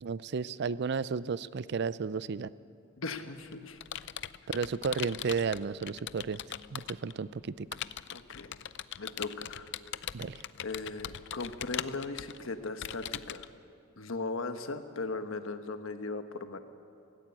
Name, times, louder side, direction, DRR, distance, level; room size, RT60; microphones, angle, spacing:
voice 1, 0.0-2.5 4.5-6.4 6.7-7.7 10.1-10.4, right 5 dB, 55° right, 18 dB, 0.5 m, -33 dB
voice 2, 3.0-3.8 8.1-8.6 9.0-9.7 10.0-10.1 10.6-13.5 14.0-16.6, left 3 dB, 75° left, 8 dB, 1.2 m, -38 dB
Computer keyboard, 3.1-7.1 7.7-13.5, left 11 dB, 60° left, 0.5 m, -40 dB
16.5 x 16.5 x 9.9 m, 2.5 s
head